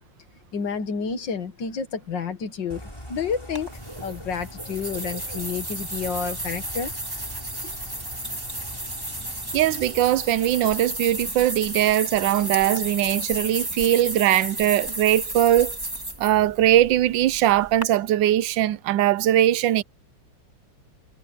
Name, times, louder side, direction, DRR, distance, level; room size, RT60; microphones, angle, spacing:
voice 1, 0.5-3.7 4.0-6.9 7.6-7.7, left 6 dB, 70° left, 2.3 m, -30 dB
Bird / Rain, 2.7-10.8, equal, 15° left, 7.6 m, -42 dB
sound 1, 3.6-17.8, right 1 dB, 10° right, 2.4 m, -33 dB
voice 2, 9.5-15.8 16.2-19.8, right 13 dB, 80° right, 1.3 m, -20 dB
omnidirectional pair, 2.0 m